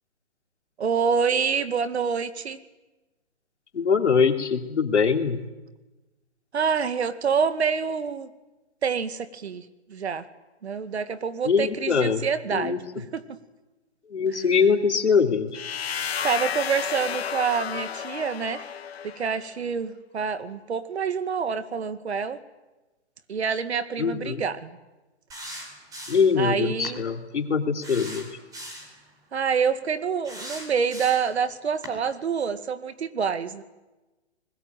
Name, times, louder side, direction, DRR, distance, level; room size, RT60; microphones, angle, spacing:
voice 1, 0.8-2.6 6.5-8.3 8.8-10.3 10.6-13.2 14.3-14.5 16.2-18.6 19.0-22.4 23.3-24.8 26.4-27.0 29.3-33.6, right 6 dB, 70° right, 11 dB, 2.2 m, -27 dB
voice 2, 3.7-5.4 11.4-12.2 12.5-12.8 14.1-15.5 24.0-24.4 26.1-28.3, left 5 dB, 90° left, 5 dB, 3.3 m, -22 dB
sound 1, 15.5-19.4, left 8 dB, 65° left, 1.9 m, -32 dB
sound 2, 25.3-26.4 26.8-27.0 27.8-28.9 30.2-31.4 31.8-32.0, equal, 10° right, 4.7 m, -39 dB
29.5 x 21.0 x 9.2 m, 1.1 s
hypercardioid pair, 165°, 34 cm